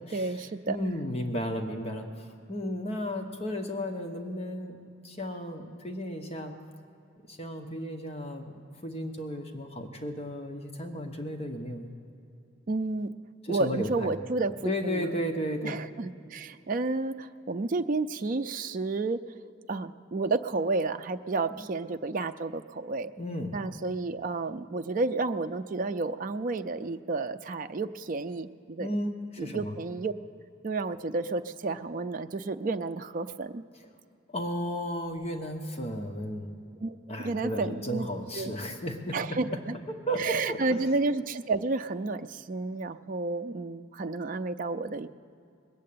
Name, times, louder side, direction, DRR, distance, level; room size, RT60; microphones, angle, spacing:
voice 1, 0.0-0.8 12.7-13.1 13.5-15.1 15.6-19.2 19.7-23.1 23.5-28.9 29.4-30.1 30.6-33.6 36.8-38.1 38.3-38.5 39.1-39.8 40.2-45.1, right 3 dB, 45° right, 8 dB, 0.4 m, -31 dB
voice 2, 0.7-2.1 2.5-4.8 5.0-6.5 7.3-8.5 8.8-11.9 13.5-14.1 14.6-15.8 23.2-23.6 28.8-29.7 34.3-36.5 37.1-39.2 40.1-40.8, equal, 30° left, 4 dB, 1.0 m, -34 dB
20.0 x 7.6 x 8.5 m, 2.6 s
head